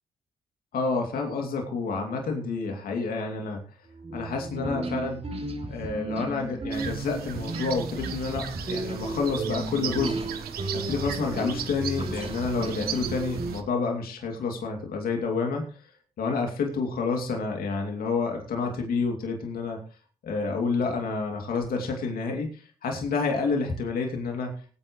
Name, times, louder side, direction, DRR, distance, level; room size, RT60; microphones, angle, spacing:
voice 1, 0.7-3.6 4.1-5.3 5.7-10.4 10.7-15.7 16.2-19.8 20.2-24.5, left 4 dB, 75° left, 2 dB, 2.7 m, -29 dB
sound 1, 3.9-13.6, right 2 dB, 40° right, 3.2 m, -34 dB
sound 2, 6.7-13.6, right 9 dB, 85° right, 1.3 m, -37 dB
18.5 x 8.9 x 3.1 m, 0.39 s
supercardioid pair, 60°, 15 cm